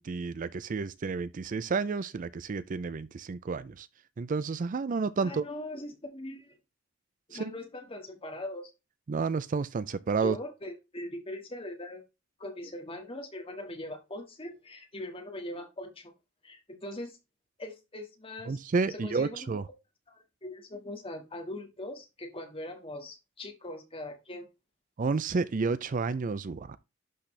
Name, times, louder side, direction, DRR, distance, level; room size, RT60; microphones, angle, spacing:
voice 1, 0.0-3.9 4.2-5.4 7.3-7.5 9.1-10.4 18.5-19.7 25.0-26.8, right 4 dB, 40° right, 0.4 m, -30 dB
voice 2, 5.2-6.6 7.3-8.7 10.2-12.0 12.4-16.1 16.4-17.2 17.6-18.6 18.9-19.5 20.1-24.5, left 1 dB, 30° left, 1.8 m, -41 dB
12.0 x 4.2 x 3.3 m
head